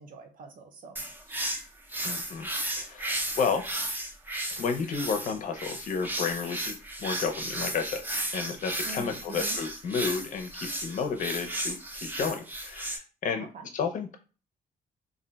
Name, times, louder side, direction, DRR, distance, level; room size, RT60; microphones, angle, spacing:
voice 1, 0.0-1.5 8.8-9.6 13.4-13.7, right 3 dB, 55° right, 6 dB, 0.7 m, -45 dB
sound 1, 1.0-13.0, right 1 dB, 10° right, 0.5 m, -34 dB
voice 2, 2.0-2.5 2.8-3.7 4.5-8.0 8.3-13.5 13.7-14.2, left 5 dB, 50° left, 5 dB, 0.6 m, -32 dB
2.5 x 2.2 x 3.8 m, 0.35 s
cardioid pair, 135°, 16 cm